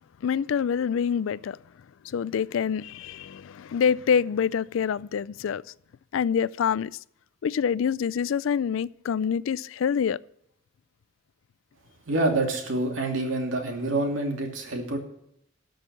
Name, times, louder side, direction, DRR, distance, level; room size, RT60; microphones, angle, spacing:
voice 1, 0.2-1.6 2.0-5.6 6.1-6.9 7.4-10.2, left 7 dB, 75° left, 0.3 m, -26 dB
voice 2, 12.1-15.0, right 2 dB, 75° right, 2.7 m, -27 dB
13.0 x 6.5 x 7.2 m
head